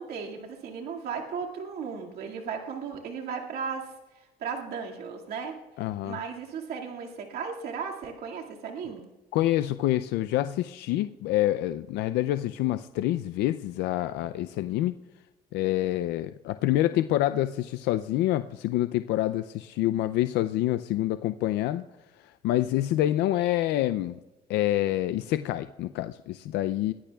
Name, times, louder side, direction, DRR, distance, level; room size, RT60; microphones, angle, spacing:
voice 1, 0.0-3.9 4.4-5.6 6.0-9.1, right 6 dB, 70° right, 0 dB, 2.1 m, -35 dB
voice 2, 5.8-6.2 9.3-14.9 15.5-21.8 22.4-24.2 24.5-26.9, left 14 dB, 85° left, 11 dB, 0.5 m, -27 dB
21.5 x 15.0 x 2.3 m, 1.1 s
cardioid pair, 110°, 17 cm